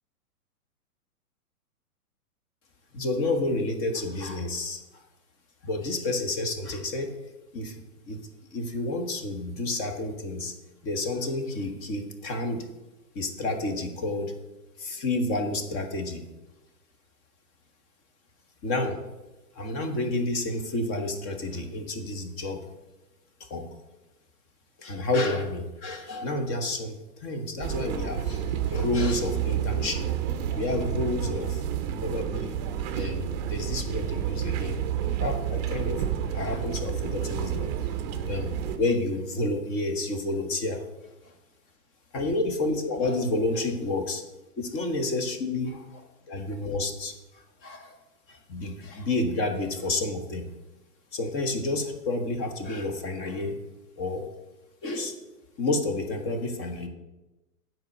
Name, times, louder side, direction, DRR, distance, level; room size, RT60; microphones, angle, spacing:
voice 1, 2.9-5.0 5.6-7.2 7.5-8.2 8.5-10.5 10.8-12.7 13.1-14.3 14.8-16.2 18.6-19.0 19.5-22.7 23.4-23.7 24.8-30.1 30.5-31.6 32.0-32.5 32.9-34.8 35.2-37.7 38.1-40.9 41.2-41.3 42.1-44.2 44.6-48.0 48.3-50.5 51.1-53.5 54.0-54.2 54.8-55.2 55.6-56.9, left 2 dB, 30° left, 6 dB, 1.2 m, -30 dB
sound 1, 27.6-38.8, right 9 dB, 30° right, 0.6 m, -30 dB
9.2 x 4.5 x 6.4 m, 1.1 s
hypercardioid pair, 125°, 45 cm